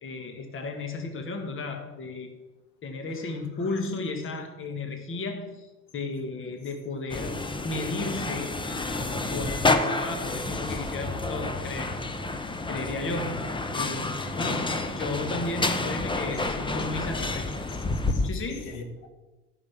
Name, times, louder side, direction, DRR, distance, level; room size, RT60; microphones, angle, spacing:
voice 1, 0.0-2.3 2.8-7.4 7.6-8.5 8.9-12.0 12.7-17.4 18.2-18.7, left 3 dB, 25° left, 5 dB, 1.8 m, -34 dB
voice 2, 3.2-3.8 10.6-10.8 11.5-11.6 16.3-16.8 17.1-17.2 17.7-19.1, left 4 dB, 60° left, 5 dB, 2.1 m, -44 dB
sound 1, 7.1-18.3, left 2 dB, 10° left, 1.0 m, -29 dB
14.5 x 6.4 x 6.0 m, 1.1 s
figure-of-eight pair, 75°, 45 cm